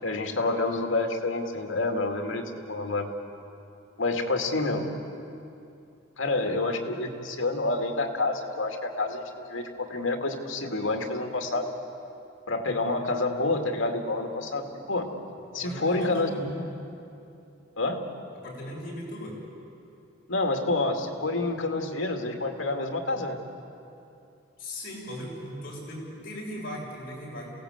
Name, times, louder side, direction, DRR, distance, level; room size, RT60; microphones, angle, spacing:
voice 1, 0.0-3.1 4.0-4.9 6.2-9.2 9.5-11.7 12.5-15.1 15.5-16.6 17.8-18.0 20.3-23.4, left 2 dB, 85° left, 4 dB, 2.3 m, -28 dB
voice 2, 15.5-16.4 18.4-19.4 24.6-27.5, equal, 50° left, -4 dB, 7.2 m, -38 dB
27.5 x 18.0 x 8.1 m, 2.7 s
head